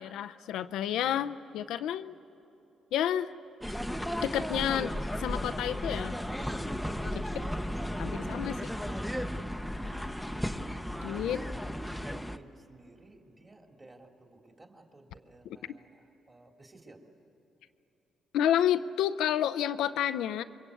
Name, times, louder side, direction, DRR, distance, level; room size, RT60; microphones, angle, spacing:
voice 1, 0.0-2.1 2.9-3.3 4.2-6.1 7.0-7.4 8.0-8.7 11.0-11.4 18.3-20.4, left 10 dB, 85° left, 11 dB, 0.6 m, -30 dB
voice 2, 1.0-2.0 11.3-17.0, right 2 dB, 25° right, 3 dB, 3.2 m, -57 dB
sound 1, 3.6-12.4, equal, ahead, 0.9 m, -34 dB
28.5 x 22.5 x 8.4 m, 3.0 s
cardioid pair, 90°, 0 cm